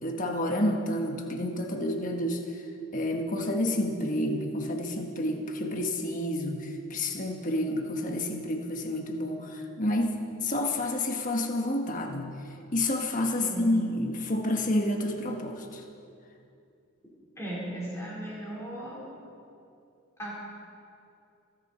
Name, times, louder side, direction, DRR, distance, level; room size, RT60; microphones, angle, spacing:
voice 1, 0.0-2.6 2.9-10.1 10.4-12.3 12.7-15.8, left 1 dB, 35° left, 3 dB, 1.4 m, -29 dB
voice 2, 17.4-19.0 20.2-20.4, right 1 dB, 15° left, -6 dB, 4.4 m, -36 dB
30.0 x 10.5 x 4.4 m, 2.6 s
head